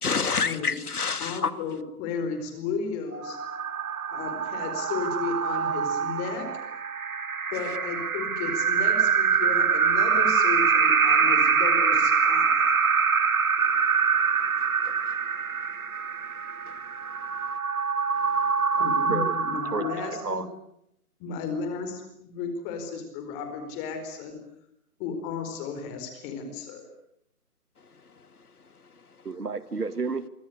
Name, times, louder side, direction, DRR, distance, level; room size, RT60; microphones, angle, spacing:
voice 1, 0.0-1.5 14.6-15.2 16.6-17.0 17.4-17.5 18.3-18.4 28.1-28.3 29.2-29.3, left 5 dB, 75° left, 2.3 m, -30 dB
voice 2, 1.2-3.4 4.1-6.5 7.5-12.7 18.8-20.4 21.2-24.4 25.0-26.9, left 5 dB, 15° left, 4.5 m, -34 dB
sound 1, 3.1-20.5, right 6 dB, 65° right, 2.8 m, -25 dB
voice 3, 19.7-20.5 29.2-30.3, right 4 dB, 85° right, 2.5 m, -31 dB
28.0 x 24.5 x 8.2 m
hypercardioid pair, 160°, 45 cm